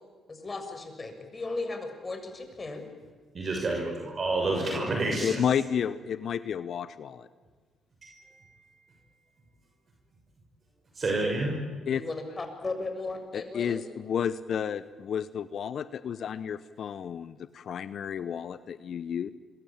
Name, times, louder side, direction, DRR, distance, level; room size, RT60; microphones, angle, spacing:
voice 1, 0.3-2.9 4.6-4.8 11.9-13.8, left 3 dB, 30° left, 6 dB, 6.6 m, -36 dB
voice 2, 3.3-5.4 8.0-8.2 10.9-11.6, right 2 dB, 45° right, 1 dB, 6.3 m, -29 dB
voice 3, 5.2-7.3 11.9-12.0 13.3-19.3, left 8 dB, 60° left, 15 dB, 1.0 m, -31 dB
26.0 x 23.0 x 9.0 m, 1.4 s
hypercardioid pair, 55°, 0 cm